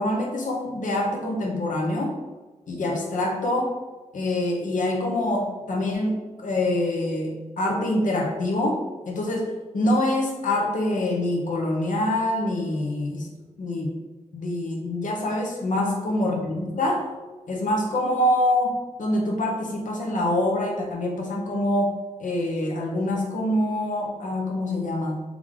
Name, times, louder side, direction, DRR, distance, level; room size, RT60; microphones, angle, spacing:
voice 1, 0.0-2.2 2.7-3.7 4.1-13.3 13.6-14.0 14.3-17.1 17.5-25.2, left 1 dB, 90° left, 0 dB, 0.8 m, -25 dB
3.4 x 3.4 x 3.6 m, 1.2 s
wide cardioid pair, 70°, 13 cm